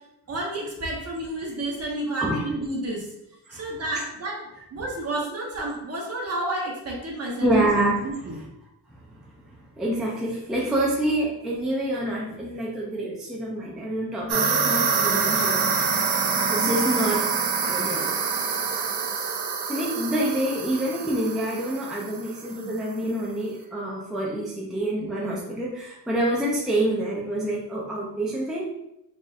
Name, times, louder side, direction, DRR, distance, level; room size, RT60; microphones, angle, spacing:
voice 1, 0.3-3.1 3.5-4.4 4.7-7.7 8.0-8.4 16.6-17.1, right 1 dB, 40° right, -2 dB, 1.1 m, -31 dB
voice 2, 7.4-8.1 8.9-9.2 9.8-15.9 16.5-17.2 17.6-18.1 19.7-28.7, right 1 dB, ahead, -4 dB, 0.5 m, -27 dB
sound 1, 14.3-22.5, right 5 dB, 75° right, 0.7 m, -26 dB
4.1 x 3.5 x 2.5 m, 0.86 s
wide cardioid pair, 140°, 40 cm